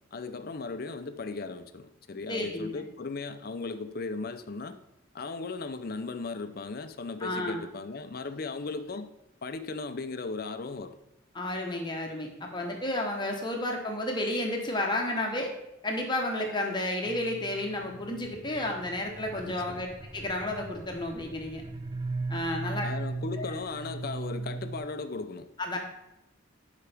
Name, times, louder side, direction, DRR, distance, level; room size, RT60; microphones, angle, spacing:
voice 1, 0.1-4.8 5.1-9.1 9.4-11.0 19.5-19.8 22.8-25.5, left 3 dB, 50° left, 0.5 m, -37 dB
voice 2, 2.3-2.8 7.2-7.6 11.3-15.5 15.8-19.9 20.1-21.6 22.3-22.9 23.4-23.5 25.6-25.8, left 1 dB, 25° left, 1.0 m, -31 dB
sound 1, 17.1-24.8, right 3 dB, 20° right, 0.5 m, -38 dB
11.5 x 4.9 x 3.4 m
head